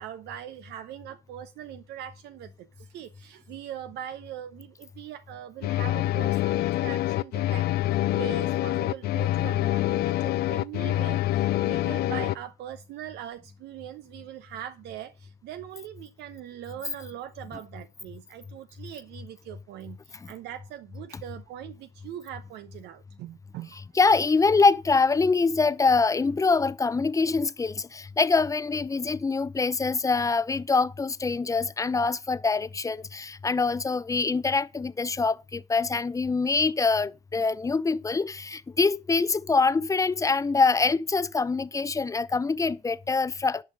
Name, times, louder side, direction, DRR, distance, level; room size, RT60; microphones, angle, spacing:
voice 1, 0.0-23.9, right 11 dB, 80° right, 0.9 m, -41 dB
sound 1, 5.6-12.3, left 15 dB, 70° left, 0.6 m, -26 dB
voice 2, 24.0-43.6, left 4 dB, 20° left, 0.6 m, -24 dB
11.0 x 5.6 x 6.3 m
cardioid pair, 110°, 17 cm